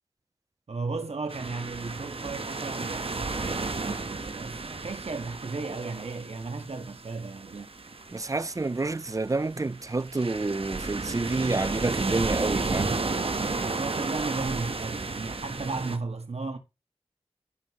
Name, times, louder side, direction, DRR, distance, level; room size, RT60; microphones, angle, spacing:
voice 1, 0.7-7.7 13.7-16.6, right 3 dB, 85° right, 1.7 m, -35 dB
sound 1, 1.3-16.0, right 3 dB, 65° right, 1.2 m, -33 dB
voice 2, 8.1-13.0, right 3 dB, 30° right, 0.4 m, -28 dB
14.5 x 5.6 x 3.1 m
wide cardioid pair, 45°, 10 cm